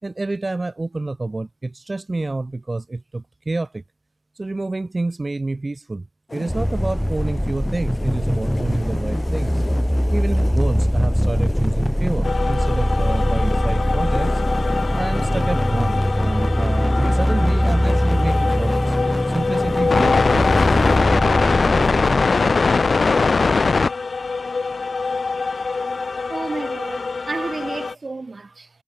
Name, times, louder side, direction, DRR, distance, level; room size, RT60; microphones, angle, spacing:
voice 1, 0.0-3.8 4.4-6.1 6.3-9.6 10.1-14.3 14.9-18.9 19.3-20.8, right 2 dB, 50° right, 4.2 m, -28 dB
sound 1, 6.3-21.0, left 2 dB, 55° left, 5.1 m, -34 dB
sound 2, 6.5-22.2, equal, ahead, 1.9 m, -21 dB
sound 3, 12.2-27.9, left 4 dB, 90° left, 0.8 m, -22 dB
voice 2, 26.3-28.7, right 3 dB, 70° right, 2.0 m, -31 dB
wide cardioid pair, 50°, 0 cm